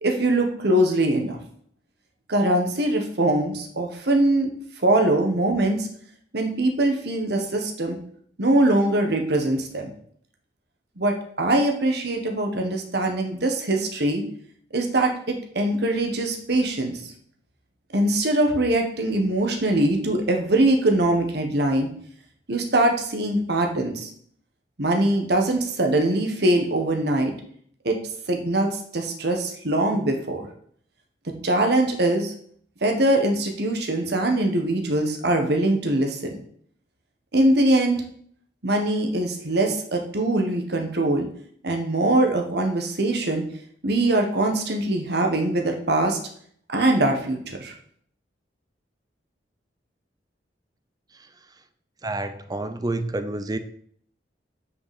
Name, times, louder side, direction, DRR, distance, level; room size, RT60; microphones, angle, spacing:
voice 1, 0.0-1.4 2.3-4.5 4.8-5.9 6.3-8.0 8.4-9.9 11.0-14.2 14.7-17.1 17.9-21.9 22.5-24.1 24.8-27.3 27.8-28.0 28.3-30.5 31.4-32.3 32.8-36.4 37.3-38.0 38.6-41.3 41.6-43.4 43.8-46.2 46.7-47.7, right 1 dB, 65° right, 3 dB, 1.4 m, -22 dB
voice 2, 52.0-53.6, right 2 dB, 20° right, 10 dB, 0.6 m, -28 dB
6.6 x 5.2 x 7.1 m, 0.62 s
head